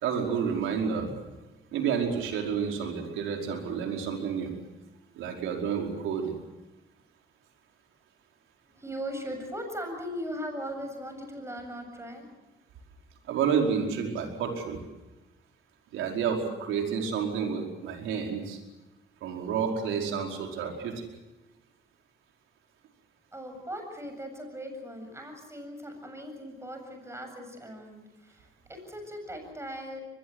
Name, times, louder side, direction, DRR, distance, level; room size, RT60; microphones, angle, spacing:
voice 1, 0.0-1.1 1.7-4.5 5.2-6.3 13.3-14.8 15.9-18.6 19.2-21.0, right 6 dB, 90° right, 2 dB, 5.0 m, -30 dB
voice 2, 8.7-12.3 23.3-30.0, equal, 15° right, 5 dB, 7.6 m, -39 dB
24.5 x 21.5 x 8.1 m, 1.1 s
cardioid pair, 90°, 20 cm